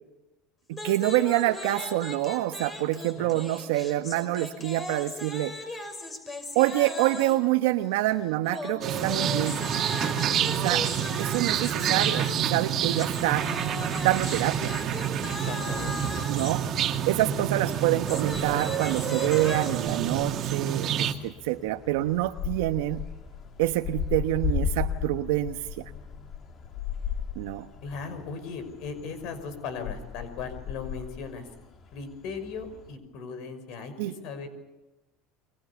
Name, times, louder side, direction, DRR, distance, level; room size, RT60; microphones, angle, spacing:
sound 1, 0.7-7.5 8.4-16.5 17.8-20.0, left 2 dB, 20° left, 5.8 m, -38 dB
voice 1, 0.7-5.5 6.5-9.6 10.5-10.9 11.2-13.5 14.0-14.8 16.3-16.7 17.1-23.1 23.6-25.9 27.4-27.7 34.0-34.1, right 16 dB, 85° right, 7 dB, 1.1 m, -26 dB
sound 2, 8.8-21.1, right 9 dB, 45° right, 2.3 m, -28 dB
sound 3, 13.2-32.9, left 7 dB, 40° left, 3.3 m, -38 dB
voice 2, 15.5-15.9 27.8-31.5 31.9-34.5, left 5 dB, 65° left, 10 dB, 5.7 m, -38 dB
29.5 x 23.5 x 7.1 m, 1.0 s
supercardioid pair, 120°, 0 cm